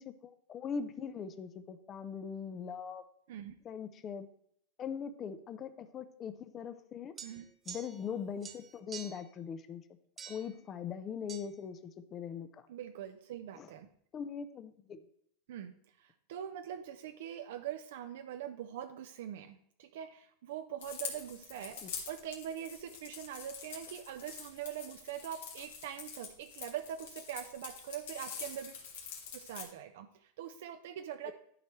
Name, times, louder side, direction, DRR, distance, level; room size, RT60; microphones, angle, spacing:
voice 1, 0.0-3.0 3.6-4.3 4.8-7.2 7.7-9.8 10.3-12.6 13.6-13.7 14.1-15.0 21.8-21.9 31.3-31.4, left 7 dB, 30° left, 11 dB, 0.5 m, -41 dB
sound 1, 7.2-8.1 8.4-9.3 10.2-10.6 11.3-11.5, right 7 dB, 20° right, 0.6 m, -47 dB
voice 2, 12.7-13.9 15.5-28.7 29.3-31.3, right 10 dB, 75° right, 7 dB, 0.5 m, -43 dB
sound 2, 20.8-29.6, left 6 dB, 80° left, 1.9 m, -46 dB
11.5 x 4.5 x 3.2 m, 0.68 s
supercardioid pair, 135°, 0 cm